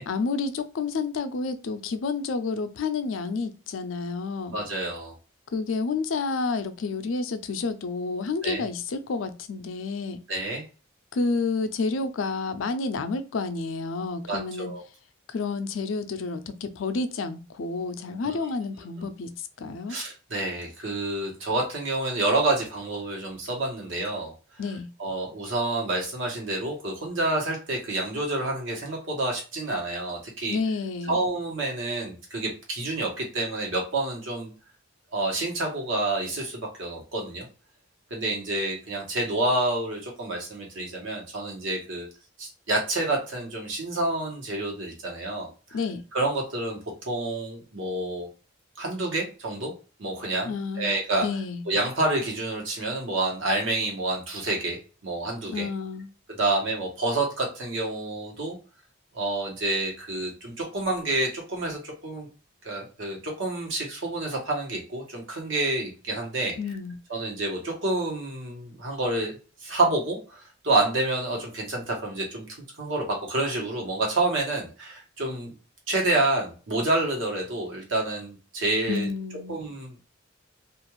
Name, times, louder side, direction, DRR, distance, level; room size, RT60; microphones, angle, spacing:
voice 1, 0.1-4.6 5.5-10.2 11.1-14.7 15.3-20.0 24.6-24.9 30.5-31.2 45.7-46.0 50.5-51.0 51.2-51.6 55.5-56.1 66.6-67.0 78.9-79.6, left 4 dB, 80° left, 0.4 m, -30 dB
voice 2, 4.5-5.1 8.4-8.6 10.3-10.6 14.3-14.8 18.2-18.5 19.9-24.3 25.0-30.6 31.1-34.5 35.1-37.5 38.1-42.1 42.4-45.5 46.1-48.3 48.8-49.7 50.0-50.5 50.8-51.3 51.7-55.7 56.4-58.6 59.1-62.3 62.6-66.6 67.1-69.3 69.6-72.5 72.8-75.5 75.9-79.1 79.5-80.1, right 2 dB, 75° right, 1.1 m, -28 dB
2.5 x 2.3 x 3.0 m
head